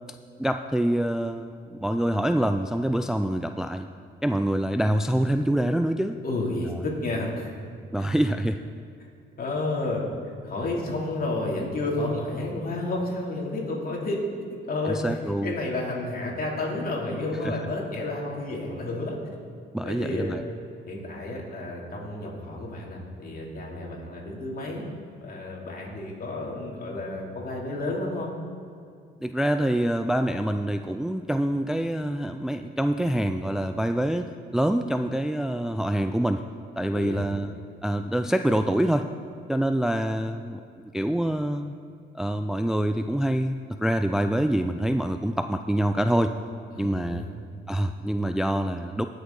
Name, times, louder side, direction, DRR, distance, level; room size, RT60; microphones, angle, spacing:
voice 1, 0.4-3.9 4.2-6.2 7.9-8.6 14.9-15.5 17.4-17.5 19.7-20.4 29.2-36.4 36.8-37.5 37.8-39.1 39.5-41.7 42.1-46.4 46.8-47.2 47.7-49.1, right 1 dB, 5° right, 8 dB, 0.3 m, -26 dB
voice 2, 6.2-7.5 8.0-8.1 9.4-14.2 14.7-19.2 19.8-20.4 20.9-24.8 25.2-28.3 36.9-37.2 46.7-47.3, left 2 dB, 50° left, -2 dB, 2.8 m, -31 dB
19.0 x 6.6 x 3.9 m, 2.3 s
cardioid pair, 90°, 20 cm